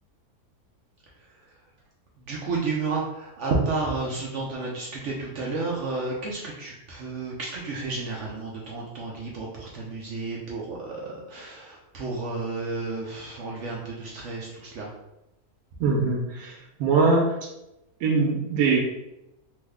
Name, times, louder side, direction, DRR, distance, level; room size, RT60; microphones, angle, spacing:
voice 1, 2.3-14.9, right 3 dB, 65° right, -3 dB, 0.8 m, -31 dB
voice 2, 15.8-16.5 16.8-17.3 18.0-18.8, right 4 dB, 80° right, 1 dB, 1.1 m, -22 dB
3.1 x 2.1 x 3.4 m, 0.91 s
omnidirectional pair, 1.6 m